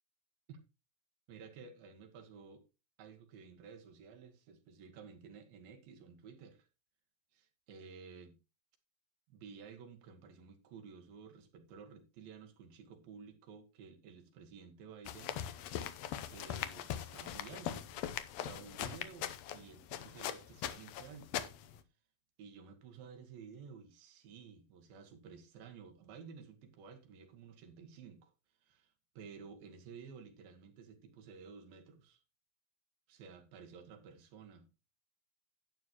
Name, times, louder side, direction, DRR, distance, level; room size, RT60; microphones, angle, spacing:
voice 1, 1.3-2.6 3.0-6.7 7.3-8.4 9.3-15.4 16.3-17.9 18.4-21.4 22.4-28.3 28.6-32.2 33.1-34.7, right 6 dB, 90° right, 3.3 m, -53 dB
sound 1, 15.0-21.8, left 10 dB, 85° left, 1.5 m, -41 dB
11.5 x 9.3 x 3.0 m
omnidirectional pair, 4.1 m